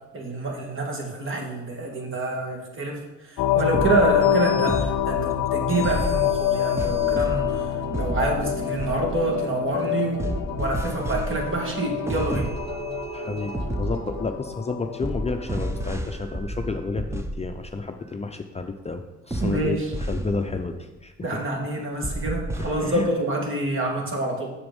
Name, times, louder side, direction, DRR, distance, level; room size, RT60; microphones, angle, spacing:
voice 1, 0.1-12.5 19.4-19.9 21.2-24.5, right 2 dB, 40° right, 0 dB, 2.3 m, -27 dB
sound 1, 3.4-15.9, left 11 dB, 85° left, 0.6 m, -27 dB
sound 2, 3.6-14.7 15.0-17.8 19.3-20.7 22.0-22.8, right 1 dB, 10° right, 0.8 m, -32 dB
sound 3, 6.8-14.2, right 5 dB, 60° right, 1.0 m, -39 dB
voice 2, 13.1-19.8 20.1-21.1 22.6-23.1, left 3 dB, 20° left, 5 dB, 0.6 m, -31 dB
7.1 x 6.9 x 5.4 m, 1.1 s
cardioid pair, 90°, 30 cm